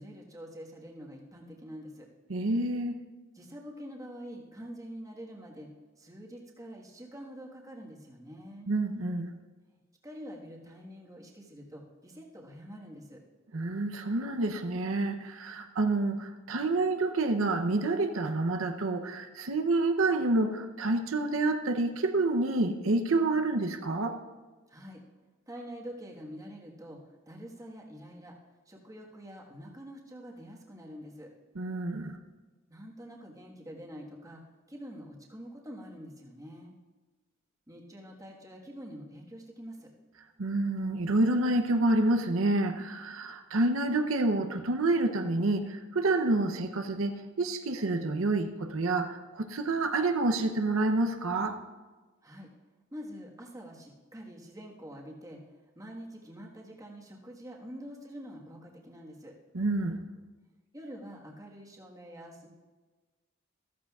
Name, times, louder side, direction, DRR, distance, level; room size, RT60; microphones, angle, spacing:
voice 1, 0.0-2.1 3.3-5.7 6.0-8.7 10.0-13.2 24.7-25.0 25.5-28.4 28.6-31.3 32.7-34.4 34.7-36.7 37.7-39.9 52.2-52.5 52.9-55.4 55.7-59.3 60.7-62.5, equal, 15° right, -1 dB, 1.5 m, -46 dB
voice 2, 2.3-3.0 8.7-9.3 13.5-24.2 31.6-32.2 40.4-51.6 59.5-60.0, right 2 dB, 85° right, 6 dB, 0.7 m, -28 dB
14.0 x 14.0 x 2.4 m, 1.3 s
head